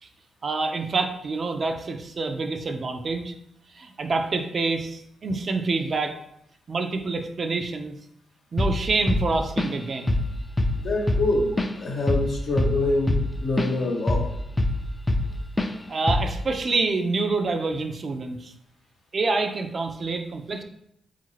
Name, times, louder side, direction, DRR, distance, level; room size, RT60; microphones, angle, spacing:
voice 1, 0.4-3.3 3.7-6.2 6.7-8.0 8.5-10.2 15.9-18.5 19.1-20.6, right 3 dB, 50° right, 5 dB, 0.4 m, -27 dB
Drum kit / Drum, 8.6-8.8 9.1-9.8 10.1-10.3 10.6-13.7 14.1-15.3 15.6-15.8 16.1-16.4, left 1 dB, 20° left, 0.4 m, -24 dB
voice 2, 10.8-14.3, left 2 dB, 65° left, 0 dB, 0.8 m, -25 dB
3.6 x 2.4 x 3.1 m, 0.75 s
hypercardioid pair, 40°, 0 cm